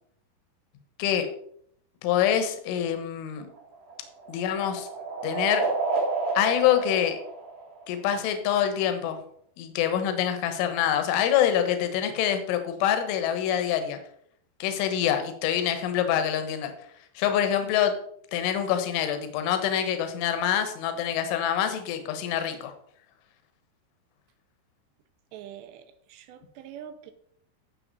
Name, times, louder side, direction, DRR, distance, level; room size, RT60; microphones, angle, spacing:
voice 1, 2.0-3.5 4.3-4.9 5.2-5.6 6.4-7.2 7.9-9.2 9.6-14.0 14.6-16.7 17.2-18.0 18.3-22.7, left 10 dB, 80° left, 3.6 m, -25 dB
sound 1, 3.4-8.2, right 3 dB, 40° right, 1.9 m, -31 dB
voice 2, 25.3-27.1, right 9 dB, 80° right, 2.6 m, -44 dB
14.0 x 6.9 x 4.1 m
omnidirectional pair, 5.6 m